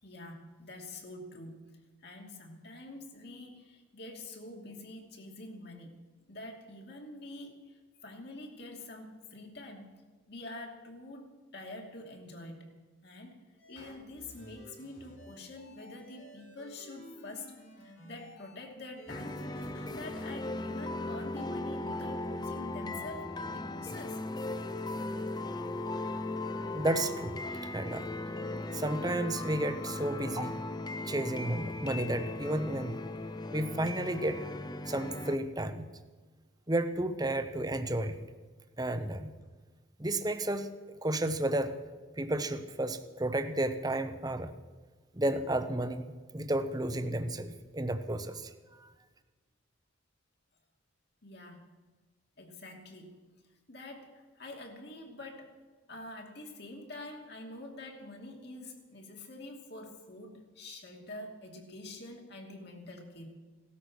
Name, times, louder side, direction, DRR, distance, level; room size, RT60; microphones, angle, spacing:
voice 1, 0.0-1.8 2.0-5.9 6.3-10.0 10.3-12.8 13.0-13.4 13.7-17.5 17.8-19.4 19.9-24.2 51.2-51.6 52.4-53.3 53.7-55.5 55.9-63.3, left 2 dB, 55° left, 1 dB, 2.6 m, -46 dB
sound 1, 13.6-18.6 19.0-20.3, equal, 85° left, 6.1 m, -53 dB
sound 2, 19.1-35.4, left 2 dB, 20° left, 0.6 m, -37 dB
voice 2, 26.7-27.4 27.7-28.1 28.7-30.5 31.1-33.0 33.5-34.4 34.9-35.9 36.7-38.2 38.8-39.3 40.0-40.7 41.0-41.7 42.2-44.5 45.1-48.5 48.8-48.9, right 1 dB, 20° right, 9 dB, 0.9 m, -32 dB
17.5 x 13.0 x 6.3 m, 1.3 s
head